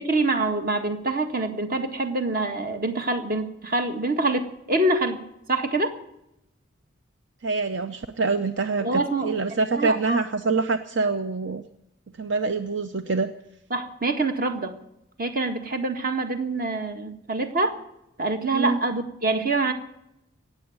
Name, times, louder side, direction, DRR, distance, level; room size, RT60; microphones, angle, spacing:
voice 1, 0.0-5.2 5.5-5.9 8.8-9.3 9.7-10.2 13.7-14.8 15.2-17.7 18.2-19.7, right 2 dB, 45° right, 6 dB, 1.8 m, -25 dB
voice 2, 7.4-11.6 12.2-13.3 18.5-18.8, right 4 dB, 65° right, 8 dB, 0.8 m, -25 dB
18.5 x 7.7 x 9.5 m, 0.82 s
head